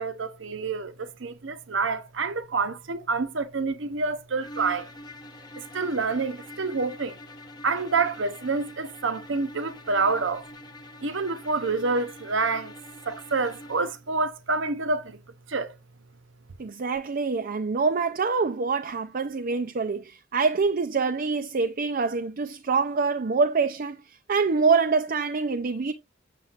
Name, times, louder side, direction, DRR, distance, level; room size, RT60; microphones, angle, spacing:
voice 1, 0.0-4.9 5.6-7.2 7.6-10.5 11.0-12.7 13.1-15.2 15.5-15.8, right 4 dB, 70° right, 0.8 m, -28 dB
sound 1, 4.4-14.0, left 1 dB, 20° left, 1.0 m, -45 dB
voice 2, 16.6-25.9, right 4 dB, 45° right, 0.5 m, -25 dB
7.4 x 6.8 x 2.5 m
head